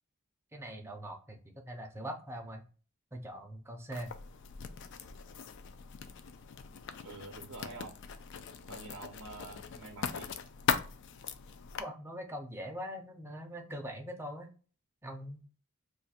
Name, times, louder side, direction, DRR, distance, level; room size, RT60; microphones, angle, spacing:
voice 1, 0.5-2.6 3.1-4.1 11.8-14.5 15.0-15.4, equal, 10° right, 2 dB, 0.5 m, -42 dB
Writing, 3.9-11.8, left 6 dB, 55° left, 0.3 m, -39 dB
voice 2, 7.0-7.9 8.7-10.3, right 2 dB, 60° right, 1 dB, 0.6 m, -47 dB
2.6 x 2.4 x 4.1 m, 0.37 s
head